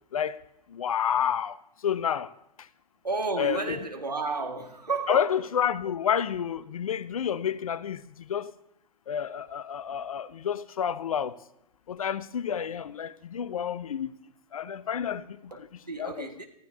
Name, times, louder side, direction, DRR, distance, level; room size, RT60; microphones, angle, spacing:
voice 1, 0.1-0.4 0.7-1.6 1.8-2.3 2.6-2.7 3.4-3.8 5.1-8.5 9.1-11.4 11.9-14.2 14.5-16.4, left 8 dB, 60° left, 0.8 m, -30 dB
voice 2, 3.0-5.3 15.5-16.5, right 3 dB, 85° right, 1.9 m, -32 dB
28.0 x 14.5 x 2.8 m
figure-of-eight pair, 105°, 20 cm